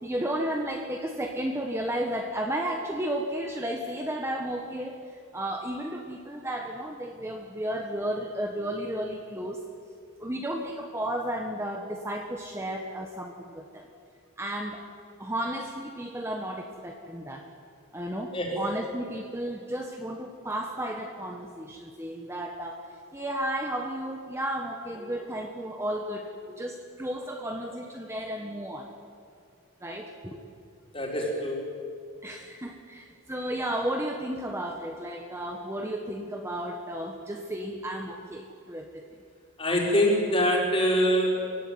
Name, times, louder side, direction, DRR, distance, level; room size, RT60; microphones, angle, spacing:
voice 1, 0.0-9.6 10.2-13.9 14.4-14.8 15.2-17.4 17.9-22.8 23.1-28.9 29.8-30.4 32.2-39.2, right 1 dB, 10° right, 2 dB, 1.3 m, -33 dB
voice 2, 18.3-18.6 30.9-31.6 39.6-41.6, equal, 25° left, -1 dB, 4.5 m, -24 dB
24.5 x 16.0 x 9.7 m, 2.4 s
head